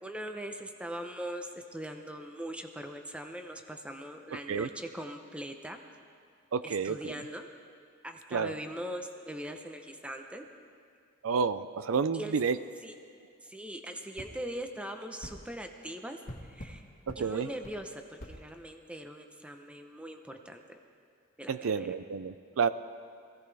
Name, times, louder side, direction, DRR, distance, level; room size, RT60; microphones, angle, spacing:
voice 1, 0.0-5.8 6.6-7.5 8.0-10.5 12.1-12.3 12.8-12.9 13.4-16.8 17.2-20.6 21.4-21.9, right 1 dB, 5° right, 5 dB, 0.8 m, -41 dB
voice 2, 4.3-4.7 6.5-7.1 8.3-8.6 11.2-12.6 17.1-17.5 21.5-22.7, right 5 dB, 70° right, 13 dB, 0.4 m, -30 dB
sound 1, 14.2-14.3 15.2-15.4 16.3-16.8 17.1-17.2 17.6-17.8 18.2-18.4, equal, 40° left, 1.5 m, -44 dB
22.5 x 16.0 x 3.4 m, 2.2 s
head